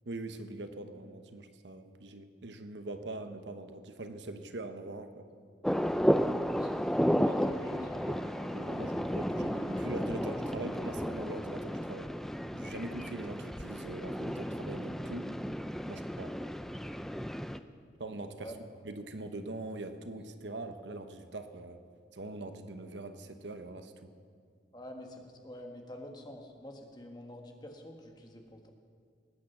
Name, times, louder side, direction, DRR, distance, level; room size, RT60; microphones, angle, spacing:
voice 1, 0.1-5.3 7.3-12.1 12.5-15.3 15.9-16.3 18.0-18.5 18.8-21.8 22.1-24.1, right 2 dB, 75° right, 8 dB, 1.0 m, -43 dB
sound 1, 5.6-17.6, equal, ahead, 0.3 m, -33 dB
voice 2, 6.4-7.4 7.8-7.9 18.3-18.6 24.7-28.7, left 1 dB, 20° left, 2 dB, 1.5 m, -48 dB
sound 2, 6.6-11.5, left 2 dB, 80° left, 3.8 m, -54 dB
19.0 x 8.8 x 7.1 m, 2.1 s
head